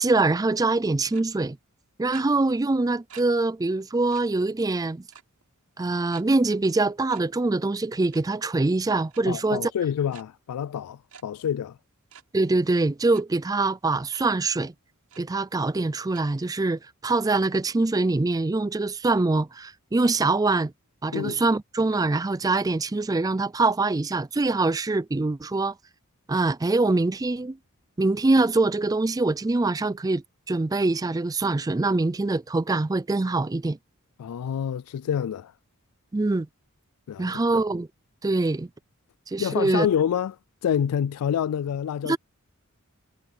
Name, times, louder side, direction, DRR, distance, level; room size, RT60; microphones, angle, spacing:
voice 1, 0.0-1.6 2.0-5.0 5.8-9.7 12.3-14.7 15.2-20.7 21.0-25.7 26.3-27.6 28.0-33.8 36.1-36.5 37.2-37.9 38.2-38.7 39.3-39.9 42.1-42.2, right 3 dB, 15° right, 0.4 m, -24 dB
sound 1, 1.1-1.2 2.1-2.2 3.1-3.2 3.6-3.7 4.1-4.2 5.1-5.4 6.1-6.2 7.1-7.2 8.0-8.2 9.1-9.2 10.1-10.2 11.1-11.2 12.1-12.2 13.1-13.2 14.1-14.2 14.7-14.8 15.1-15.2 16.1-16.2, right 8 dB, 90° right, 6.7 m, -47 dB
voice 2, 9.3-11.8 21.1-21.4 34.2-35.5 37.1-37.3 39.4-42.2, left 8 dB, 90° left, 0.3 m, -27 dB
head